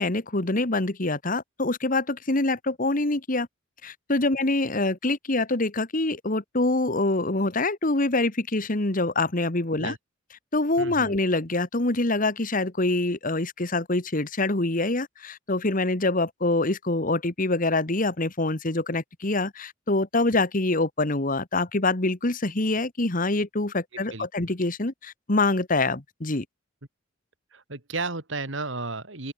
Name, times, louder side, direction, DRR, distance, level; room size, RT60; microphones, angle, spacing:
voice 1, 0.0-3.5 3.8-10.0 10.5-26.5, left 2 dB, 45° left, 1.8 m, -25 dB
voice 2, 10.8-11.1 24.1-24.3 27.5-29.3, right 3 dB, 70° right, 2.8 m, -33 dB
open air
head